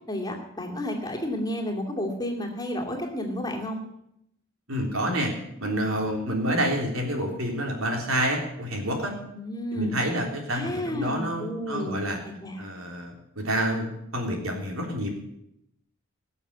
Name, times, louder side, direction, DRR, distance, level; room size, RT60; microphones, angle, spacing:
voice 1, 0.1-3.8 9.3-10.0 10.5-12.1 12.4-12.7, left 1 dB, 20° left, 1 dB, 2.6 m, -31 dB
voice 2, 4.7-5.3 5.6-9.1 9.7-12.2 12.6-15.1, right 1 dB, 85° right, 1 dB, 3.6 m, -28 dB
19.5 x 7.0 x 8.1 m, 0.78 s
head